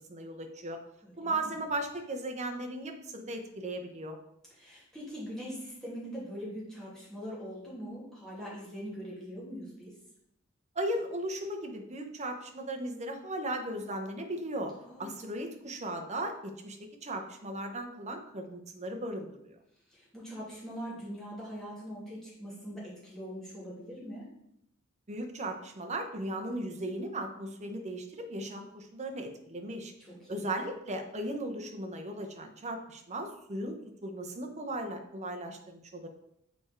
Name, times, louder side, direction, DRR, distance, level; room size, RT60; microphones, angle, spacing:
voice 1, 0.1-0.8 1.2-4.2 10.7-14.7 15.0-19.6 25.1-29.9 30.3-33.8 34.0-36.1, right 1 dB, 35° right, 5 dB, 0.9 m, -37 dB
voice 2, 1.0-1.6 4.5-9.9 14.8-15.1 19.9-24.3 30.0-30.5, equal, ahead, -8 dB, 2.8 m, -42 dB
7.1 x 4.5 x 4.5 m, 0.78 s
head